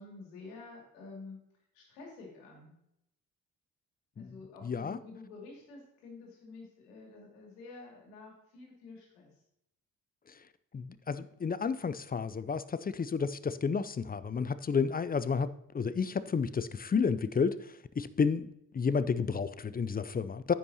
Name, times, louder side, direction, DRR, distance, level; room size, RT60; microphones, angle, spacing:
voice 1, 0.0-1.4 1.7-2.7 4.2-9.4, left 3 dB, 80° left, -1 dB, 2.7 m, -49 dB
voice 2, 4.6-5.0 10.7-20.5, left 5 dB, 20° left, 15 dB, 0.5 m, -31 dB
14.5 x 5.8 x 2.8 m, 0.78 s
figure-of-eight pair, 40°, 46 cm